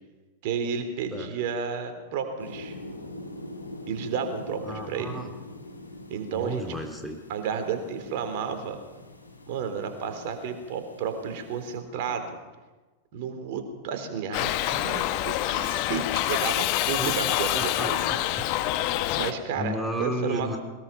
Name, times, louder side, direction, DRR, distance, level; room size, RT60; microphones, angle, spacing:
voice 1, 0.4-2.8 3.9-5.2 6.1-6.8 7.3-8.8 9.5-12.4 13.1-17.5 17.8-18.0 19.1-20.6, right 6 dB, 50° right, 7 dB, 3.6 m, -32 dB
sound 1, 2.4-11.8, left 1 dB, 85° left, 2.6 m, -43 dB
voice 2, 4.7-5.3 6.3-7.2 17.0-17.2 17.5-18.5 19.5-20.6, equal, 5° right, 3 dB, 2.3 m, -33 dB
Shout / Livestock farm animals working animals, 14.3-19.3, left 15 dB, 45° left, 1.1 m, -26 dB
22.5 x 21.0 x 5.9 m, 1.2 s
figure-of-eight pair, 90°, 0 cm